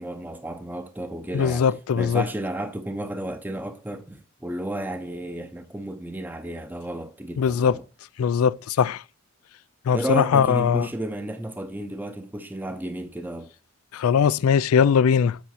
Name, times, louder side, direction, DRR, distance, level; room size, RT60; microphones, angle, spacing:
voice 1, 0.0-7.8 9.9-13.5, right 1 dB, 10° right, 0.6 m, -32 dB
voice 2, 1.3-2.2 7.4-7.7 8.2-9.0 9.9-10.9 13.9-15.4, left 7 dB, 90° left, 0.3 m, -20 dB
8.4 x 4.1 x 6.3 m
head